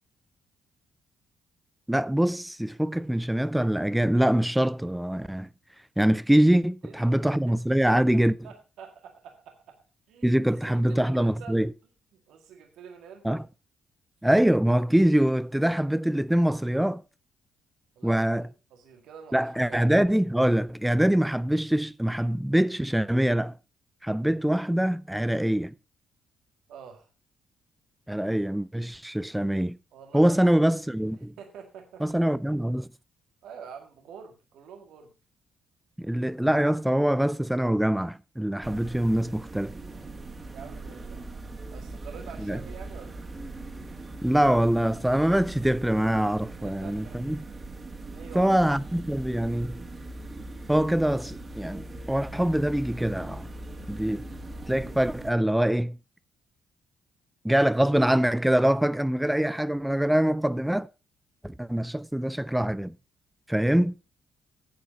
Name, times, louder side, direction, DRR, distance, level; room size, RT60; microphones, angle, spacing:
voice 1, 1.9-5.5 6.0-8.3 10.2-11.7 13.2-13.4 14.2-17.0 18.0-18.5 19.3-23.5 24.0-25.7 28.1-29.8 30.1-31.3 32.0-32.9 36.0-39.7 42.4-42.6 44.2-47.4 48.3-49.8 50.7-53.5 53.9-54.2 54.7-56.0 57.4-60.9 61.4-62.9 63.5-63.9, right 1 dB, 5° right, 0.5 m, -24 dB
voice 2, 6.8-7.3 7.8-8.2 8.4-9.7 10.1-11.6 12.3-13.4 18.0-19.8 26.7-27.1 29.9-30.5 31.1-32.3 33.4-35.1 40.5-41.3 41.7-43.2 46.6-47.2 48.1-48.5, right 7 dB, 85° right, 2.0 m, -46 dB
sound 1, 38.6-55.3, right 2 dB, 30° right, 2.3 m, -40 dB
10.0 x 7.5 x 5.2 m
cardioid pair, 90°, 0 cm